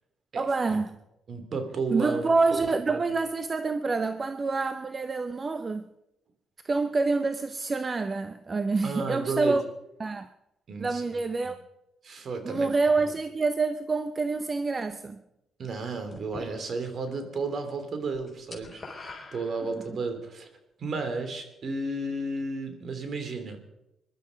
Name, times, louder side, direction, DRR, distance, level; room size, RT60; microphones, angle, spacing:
voice 1, 0.3-1.0 1.9-5.9 6.6-9.6 10.0-10.3 10.8-11.6 12.4-15.2 19.7-19.8, right 3 dB, 30° right, 0.8 m, -27 dB
voice 2, 1.3-2.2 2.9-3.0 8.8-9.6 10.7-11.2 12.0-12.7 15.6-18.8 19.3-20.5 20.8-23.6, right 3 dB, 50° right, 3.1 m, -32 dB
sound 1, 16.1-17.1 17.4-17.7 18.0-20.1, left 3 dB, 25° left, 4.7 m, -45 dB
22.5 x 12.0 x 5.3 m
cardioid pair, 90°, 0 cm